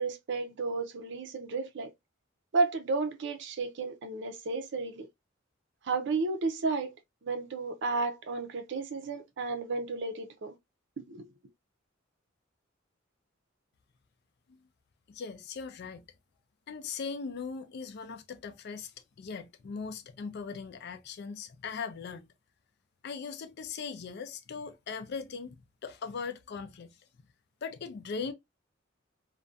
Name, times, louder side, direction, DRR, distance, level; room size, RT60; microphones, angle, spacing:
voice 1, 0.0-1.9 2.5-5.1 5.8-6.9 7.2-10.5 11.1-11.3, right 3 dB, 60° right, 0.5 m, -32 dB
voice 2, 15.1-16.1 16.7-18.9 19.2-22.3 23.0-27.0 27.6-28.3, left 5 dB, 55° left, 0.4 m, -39 dB
2.4 x 2.2 x 2.5 m
head